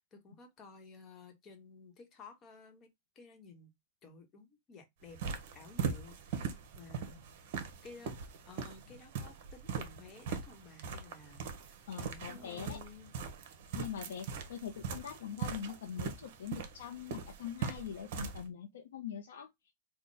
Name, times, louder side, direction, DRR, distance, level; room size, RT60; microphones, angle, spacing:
voice 1, 0.0-2.9 3.1-3.7 4.0-5.2 5.5-7.2 7.8-8.2 8.5-13.1, left 4 dB, 30° left, 1.1 m, -54 dB
sound 1, 5.0-18.4, right 6 dB, 60° right, 0.9 m, -41 dB
voice 2, 11.9-12.8 13.7-19.5, left 9 dB, 85° left, 0.7 m, -43 dB
3.6 x 2.2 x 4.0 m
supercardioid pair, 140°, 0 cm